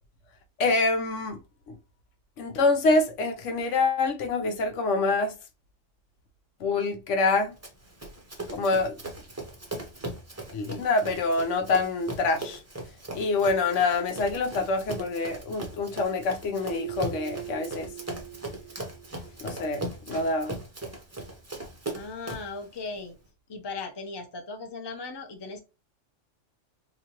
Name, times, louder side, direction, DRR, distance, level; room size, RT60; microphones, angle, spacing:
voice 1, 0.6-1.4 1.7-1.8 2.4-5.3 6.6-7.5 8.5-9.0 10.5-12.6 13.1-17.9 19.4-20.6, left 3 dB, 75° left, 1.0 m, -26 dB
Run, 7.6-22.6, right 1 dB, 15° right, 0.6 m, -39 dB
Keyboard (musical), 16.7-19.5, right 16 dB, 75° right, 0.9 m, -41 dB
voice 2, 21.9-23.2 23.5-25.6, left 3 dB, 25° left, 0.6 m, -37 dB
4.0 x 2.5 x 2.9 m
omnidirectional pair, 1.3 m